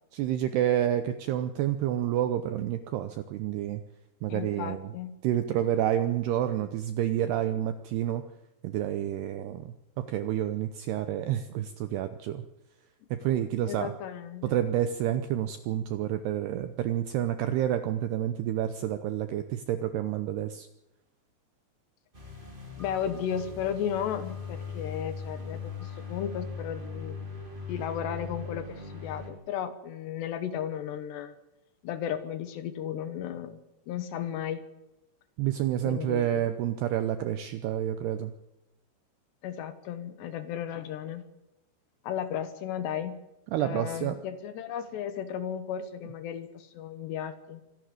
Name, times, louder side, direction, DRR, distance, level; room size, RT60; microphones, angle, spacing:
voice 1, 0.1-3.8 4.2-4.9 5.2-8.2 8.6-12.4 13.1-13.9 14.4-20.7 35.4-38.3 43.5-44.2, right 11 dB, 80° right, 10 dB, 2.4 m, -29 dB
voice 2, 4.3-5.1 13.7-14.6 22.8-27.1 27.7-31.3 31.8-33.6 33.9-34.6 35.8-36.5 39.4-41.2 42.0-43.2 43.6-47.6, left 9 dB, 70° left, 11 dB, 3.0 m, -34 dB
sound 1, 22.1-29.3, left 5 dB, 10° right, 2.9 m, -40 dB
25.5 x 11.5 x 9.3 m, 0.92 s
omnidirectional pair, 5.7 m